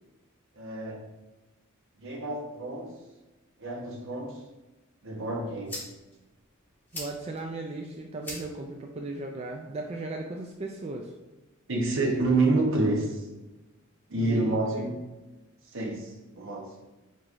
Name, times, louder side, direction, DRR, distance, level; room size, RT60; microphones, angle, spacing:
voice 1, 0.6-1.0 2.0-2.9 3.6-4.4 5.0-5.8 11.7-13.3 14.1-15.0 15.7-16.7, right 2 dB, 65° right, 1 dB, 0.9 m, -28 dB
sound 1, 5.1-11.1, left 1 dB, 10° left, 1.4 m, -46 dB
voice 2, 6.9-11.1 14.2-14.9, right 2 dB, 30° right, 1 dB, 0.3 m, -37 dB
4.8 x 4.2 x 2.5 m, 1.1 s
head